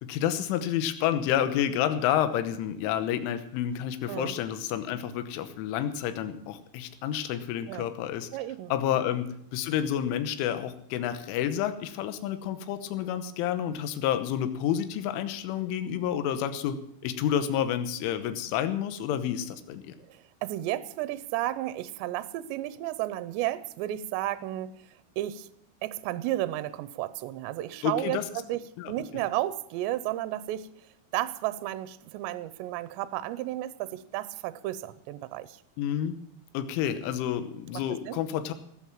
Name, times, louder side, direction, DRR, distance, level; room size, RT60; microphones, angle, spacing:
voice 1, 0.0-8.3 8.7-16.8 17.0-20.0 27.8-28.2 28.8-28.9 35.8-36.2 36.6-38.5, left 10 dB, 80° left, 10 dB, 3.5 m, -29 dB
voice 2, 8.3-8.7 19.3-19.4 20.1-24.7 25.2-25.5 25.8-28.6 28.9-30.7 31.1-35.6 37.7-38.2, right 14 dB, 80° right, 14 dB, 2.6 m, -33 dB
18.0 x 8.6 x 7.4 m, 0.71 s
omnidirectional pair, 5.7 m